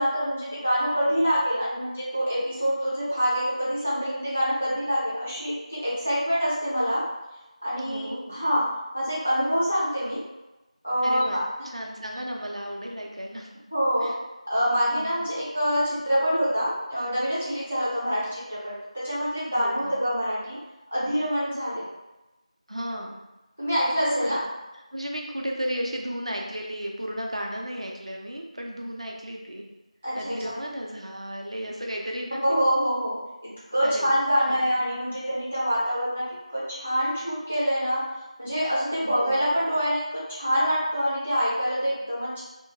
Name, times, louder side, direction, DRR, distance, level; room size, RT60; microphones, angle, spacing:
voice 1, 0.0-7.0 7.6-8.6 8.9-10.2 10.8-11.4 13.7-14.1 14.5-20.6 20.9-21.8 23.6-24.4 30.0-30.5 32.4-33.2 33.7-36.2 36.5-38.0 38.4-42.4, equal, 15° left, -9 dB, 0.4 m, -25 dB
voice 2, 7.8-8.4 11.0-11.4 11.7-13.5 14.0-14.2 14.9-15.2 19.6-20.0 22.7-23.2 24.2-24.4 24.9-29.6 30.1-32.6 33.8-34.2 34.5-34.7 39.0-39.4, equal, 55° right, 0 dB, 0.6 m, -34 dB
2.8 x 2.7 x 2.7 m, 1.0 s
figure-of-eight pair, 175°, 4 cm